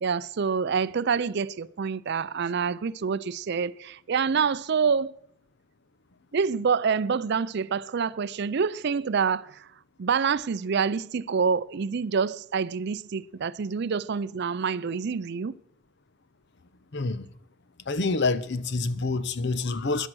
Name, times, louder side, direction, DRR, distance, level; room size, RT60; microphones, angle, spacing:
voice 1, 0.0-5.1 6.3-9.6 10.0-15.5, right 6 dB, 55° right, 0.5 m, -27 dB
voice 2, 16.9-17.3 17.9-20.1, left 3 dB, 55° left, 0.8 m, -27 dB
15.0 x 11.0 x 6.2 m
head